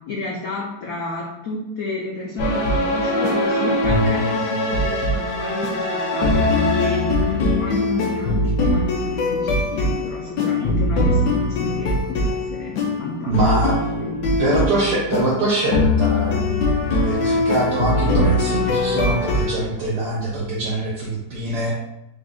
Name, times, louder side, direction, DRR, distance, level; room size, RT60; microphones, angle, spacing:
voice 1, 0.0-12.7 13.0-13.4 13.6-14.4, left 2 dB, 85° left, -2 dB, 0.7 m, -29 dB
sound 1, 2.4-19.5, left 2 dB, 65° left, 1.1 m, -21 dB
voice 2, 13.3-13.7 14.4-21.7, right 2 dB, 65° right, -6 dB, 1.3 m, -23 dB
3.8 x 3.7 x 2.4 m, 0.89 s
omnidirectional pair, 2.1 m